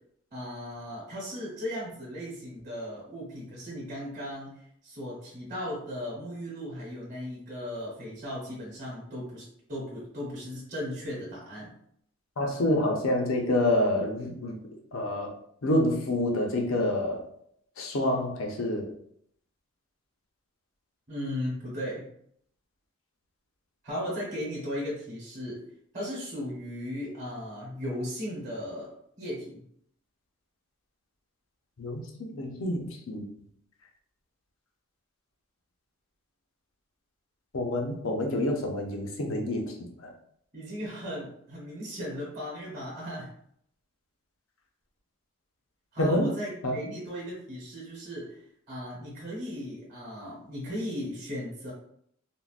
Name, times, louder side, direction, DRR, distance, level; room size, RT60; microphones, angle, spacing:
voice 1, 0.3-11.7 21.1-22.0 23.8-25.6 25.9-29.6 38.3-38.4 40.5-43.3 45.9-48.4 48.7-51.7, equal, 45° right, -6 dB, 1.0 m, -36 dB
voice 2, 12.4-14.6 14.9-15.3 15.6-17.2 17.8-18.9 31.8-33.3 37.5-39.7 40.0-40.1 46.0-46.3 46.6-46.8, left 1 dB, 75° left, 1 dB, 0.6 m, -27 dB
3.7 x 2.1 x 2.4 m, 0.69 s
head